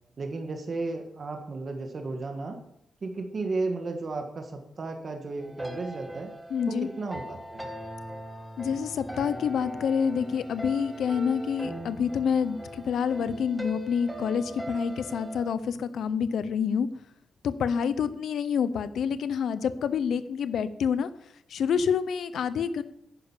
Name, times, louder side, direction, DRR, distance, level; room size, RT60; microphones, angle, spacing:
voice 1, 0.2-2.6 3.0-6.3 6.7-7.7, right 3 dB, 35° right, 3 dB, 1.6 m, -34 dB
sound 1, 5.4-15.5, equal, 5° right, 1.6 m, -40 dB
voice 2, 6.5-6.9 8.6-16.9 17.4-21.1 21.5-22.8, left 7 dB, 85° left, 13 dB, 0.7 m, -27 dB
10.5 x 10.5 x 7.3 m, 0.74 s
wide cardioid pair, 170°, 0 cm